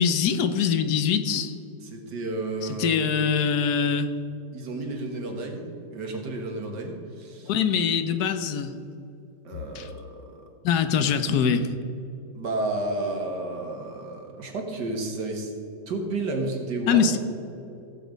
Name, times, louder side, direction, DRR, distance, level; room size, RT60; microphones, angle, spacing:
voice 1, 0.0-1.5 2.6-4.1 7.5-8.7 9.7-9.9 10.6-11.7 16.9-17.2, left 6 dB, 70° left, 10 dB, 1.2 m, -23 dB
voice 2, 1.8-3.0 4.5-7.5 9.4-10.4 12.3-15.5 15.9-17.2, right 2 dB, 80° right, 2 dB, 2.3 m, -31 dB
16.0 x 8.1 x 5.1 m, 2.8 s
omnidirectional pair, 1.8 m